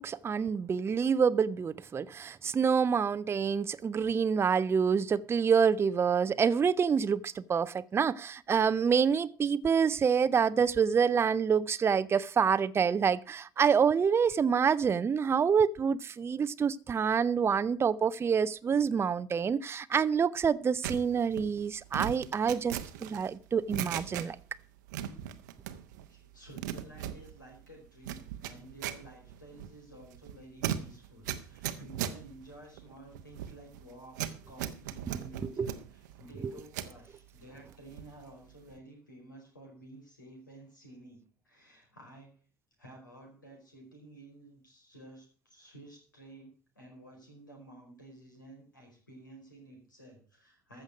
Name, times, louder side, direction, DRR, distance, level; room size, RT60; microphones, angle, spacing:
voice 1, 0.0-24.4 35.4-35.7 36.4-36.5, right 6 dB, 25° right, 0.5 m, -27 dB
sound 1, 20.8-24.6 24.9-26.1 26.3-37.0 37.4-38.2 38.5-38.8, right 11 dB, 70° right, 0.8 m, -39 dB
voice 2, 26.1-34.2 34.5-41.2 41.4-42.3 42.8-50.8, right 1 dB, 85° left, 4.7 m, -52 dB
14.5 x 6.5 x 6.1 m
figure-of-eight pair, 60°, 10 cm